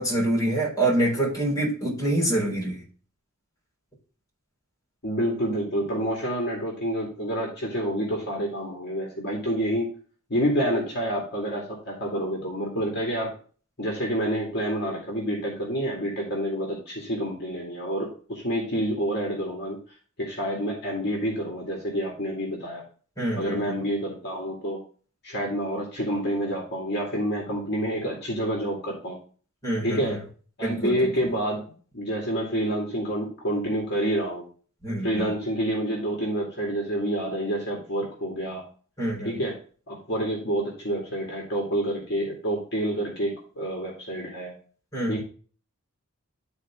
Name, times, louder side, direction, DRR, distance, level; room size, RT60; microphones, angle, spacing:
voice 1, 0.0-2.8 23.2-23.8 29.6-30.2 30.6-30.9 34.8-35.3 39.0-39.3 44.9-45.2, right 1 dB, 15° left, -3 dB, 4.1 m, -26 dB
voice 2, 5.0-9.9 10.3-13.3 13.8-19.8 20.2-22.8 23.4-24.8 25.2-29.2 29.8-30.2 30.6-34.4 35.0-38.6 39.2-39.6 39.9-44.5 45.1-45.2, equal, 50° left, -1 dB, 2.2 m, -28 dB
12.0 x 4.3 x 3.6 m, 0.40 s
head